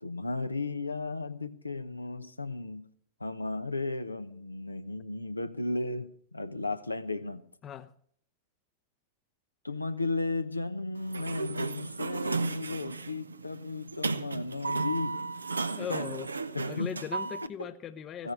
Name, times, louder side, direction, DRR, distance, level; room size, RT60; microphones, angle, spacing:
voice 1, 0.0-2.8 3.2-7.4 9.6-15.3 15.8-16.1 16.5-17.0 17.6-17.7 18.2-18.3, left 3 dB, 85° left, 0.9 m, -35 dB
Sliding door, 11.0-17.5, right 3 dB, 80° right, 0.6 m, -34 dB
voice 2, 15.7-16.3 16.7-18.3, left 8 dB, 30° left, 0.7 m, -39 dB
15.5 x 10.0 x 6.4 m
figure-of-eight pair, 90°, 0 cm